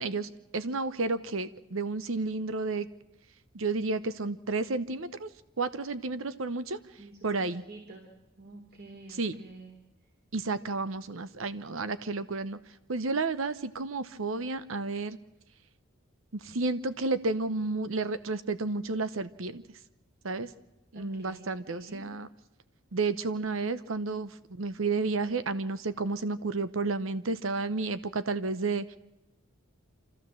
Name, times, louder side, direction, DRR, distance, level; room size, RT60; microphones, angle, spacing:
voice 1, 0.0-2.9 3.5-5.3 5.6-6.8 7.2-7.6 9.2-9.4 10.3-12.6 12.9-15.2 16.4-19.6 20.2-20.5 20.9-22.3 22.9-29.0, right 3 dB, 85° right, 13 dB, 0.9 m, -31 dB
voice 2, 7.0-7.4 7.7-8.1 8.4-9.8 20.9-22.0, right 2 dB, 50° right, 0 dB, 3.4 m, -48 dB
26.0 x 15.0 x 7.6 m, 0.98 s
head